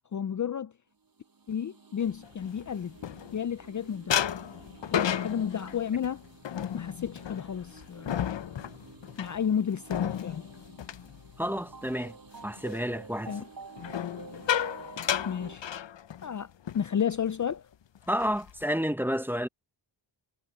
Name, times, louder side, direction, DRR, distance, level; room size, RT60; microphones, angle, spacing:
voice 1, 0.1-0.7 1.5-3.0 3.3-4.2 4.9-6.2 6.7-8.2 9.2-10.4 13.3-13.4 15.2-15.6 16.2-17.6, left 8 dB, 45° left, 0.4 m, -32 dB
sound 1, 1.2-15.6, right 4 dB, 50° right, 6.9 m, -50 dB
sound 2, 2.2-3.7 4.1-11.9 12.3-12.6 13.8-16.4 16.7-16.9 17.2-17.5 18.0-18.6, left 9 dB, 75° left, 0.8 m, -33 dB
voice 2, 11.4-12.2 12.4-13.3 18.1-19.5, equal, 5° right, 0.8 m, -30 dB
wide cardioid pair, 110°, 44 cm